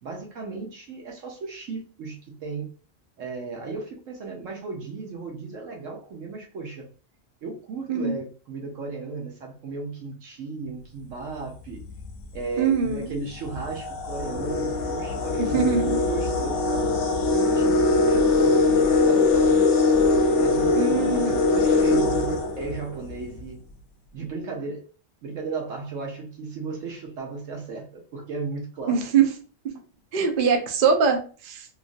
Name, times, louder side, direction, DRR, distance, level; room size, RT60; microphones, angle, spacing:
voice 1, 0.0-2.7 3.2-6.9 7.4-11.8 12.3-16.9 17.3-19.6 20.4-20.8 21.1-23.6 24.1-24.9 25.2-29.0, right 4 dB, 75° right, 1.2 m, -35 dB
sound 1, 11.8-12.1 12.9-13.0 13.4-23.2, left 3 dB, 65° left, 0.9 m, -22 dB
voice 2, 12.6-13.1 15.4-16.0 20.8-21.4 28.9-29.3 30.1-31.2 31.4-31.7, right 6 dB, 55° right, 0.6 m, -22 dB
3.0 x 2.5 x 2.5 m
omnidirectional pair, 1.3 m